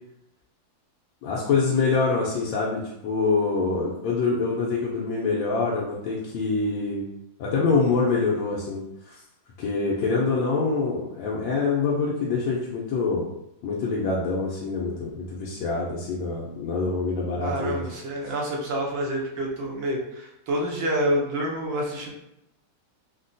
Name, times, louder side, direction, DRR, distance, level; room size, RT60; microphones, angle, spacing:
voice 1, 1.2-7.0 7.4-9.2 9.6-13.2 13.6-17.8, left 4 dB, 80° left, -5 dB, 1.3 m, -25 dB
voice 2, 17.4-22.1, right 1 dB, 80° right, -1 dB, 1.4 m, -28 dB
3.9 x 2.1 x 2.5 m, 0.84 s
omnidirectional pair, 2.1 m